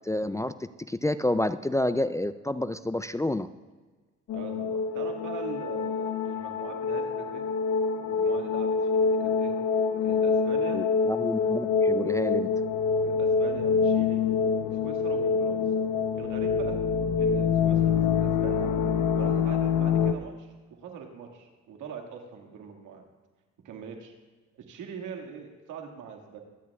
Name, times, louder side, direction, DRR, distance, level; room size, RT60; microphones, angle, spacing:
voice 1, 0.0-3.5 10.7-12.5, left 1 dB, 10° left, 12 dB, 0.3 m, -29 dB
sound 1, 4.3-20.1, left 5 dB, 75° left, 0.9 m, -26 dB
voice 2, 4.3-7.5 8.0-9.5 10.0-10.8 13.0-14.2 14.6-15.6 16.1-16.8 17.2-18.7 19.1-20.5 20.8-23.1 23.6-24.1 24.5-26.4, right 6 dB, 90° right, 2 dB, 2.0 m, -42 dB
24.0 x 10.5 x 2.4 m, 1.3 s
cardioid pair, 90°, 30 cm